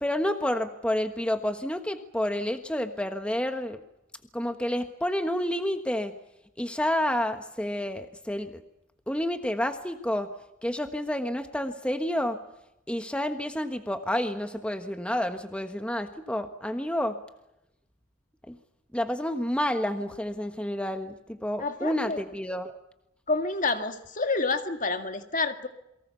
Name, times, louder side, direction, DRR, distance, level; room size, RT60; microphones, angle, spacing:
voice 1, 0.0-3.8 4.3-6.1 6.6-8.6 9.1-10.3 10.6-12.4 12.9-17.2 18.5-18.6 18.9-22.7, left 1 dB, 5° left, 7 dB, 1.3 m, -29 dB
voice 2, 21.6-22.2 23.3-25.7, left 3 dB, 40° left, 7 dB, 1.9 m, -28 dB
29.0 x 23.5 x 7.0 m, 0.85 s
head